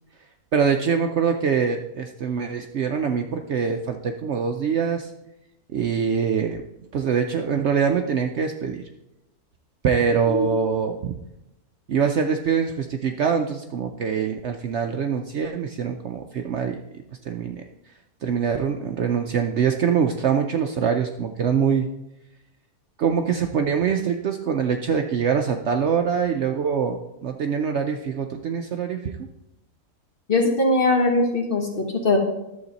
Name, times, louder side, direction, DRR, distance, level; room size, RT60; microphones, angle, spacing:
voice 1, 0.5-5.1 5.7-6.6 6.9-8.8 9.8-11.2 11.9-16.8 17.2-17.6 18.2-21.9 23.0-29.2, right 6 dB, 60° right, 5 dB, 0.8 m, -24 dB
voice 2, 30.3-32.2, left 2 dB, 40° left, 2 dB, 1.5 m, -21 dB
11.5 x 7.2 x 4.0 m, 0.90 s
omnidirectional pair, 1.6 m